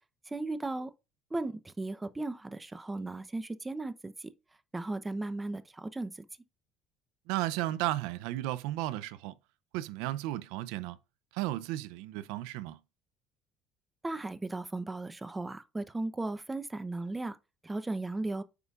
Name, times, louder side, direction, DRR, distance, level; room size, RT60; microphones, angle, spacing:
voice 1, 0.3-0.9 1.3-4.3 4.7-6.1 14.0-17.4 17.6-18.4, right 2 dB, 15° right, 0.7 m, -36 dB
voice 2, 7.3-9.3 9.7-11.0 11.3-12.8, right 15 dB, 90° right, 0.4 m, -34 dB
8.1 x 4.9 x 2.4 m
cardioid pair, 100°, 0 cm